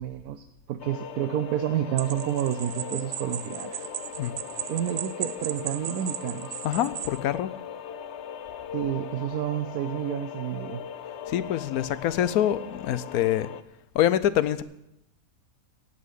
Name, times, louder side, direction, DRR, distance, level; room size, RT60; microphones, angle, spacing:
voice 1, 0.0-3.8 4.7-6.6 8.7-10.8, right 11 dB, 90° right, 7 dB, 1.1 m, -30 dB
sound 1, 0.8-13.6, left 8 dB, 60° left, 0.7 m, -39 dB
sound 2, 2.0-7.2, right 10 dB, 70° right, 0.5 m, -36 dB
voice 2, 6.6-7.5 11.3-13.5 13.9-14.6, left 11 dB, 80° left, 16 dB, 1.1 m, -25 dB
16.5 x 5.6 x 8.2 m, 0.86 s
omnidirectional pair, 1.6 m